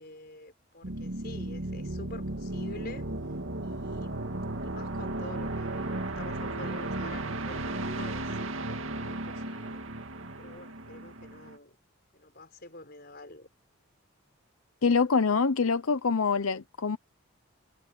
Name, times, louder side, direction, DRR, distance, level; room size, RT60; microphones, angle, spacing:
voice 1, 0.0-3.1 3.6-9.8 10.4-11.8 12.1-13.5, left 2 dB, 50° left, 5.4 m, -47 dB
sound 1, 0.8-11.6, right 2 dB, 70° right, 2.3 m, -35 dB
voice 2, 14.8-17.0, left 5 dB, 85° left, 0.8 m, -25 dB
head